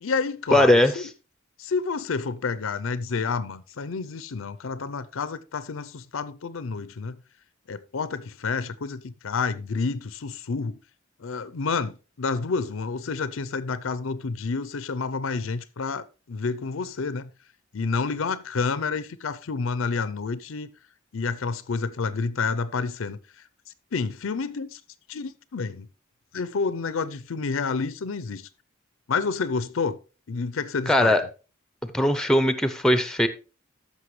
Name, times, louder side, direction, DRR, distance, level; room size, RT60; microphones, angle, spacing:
voice 1, 0.0-1.0 1.6-7.2 7.7-10.8 11.2-17.3 17.7-20.7 21.1-23.2 23.9-24.8 25.1-25.9 26.3-28.5 29.1-30.0 30.3-31.1, left 4 dB, 75° left, 0.6 m, -29 dB
voice 2, 0.5-0.9 30.9-31.2 31.9-33.3, left 1 dB, 5° left, 0.6 m, -19 dB
14.0 x 5.7 x 3.1 m
head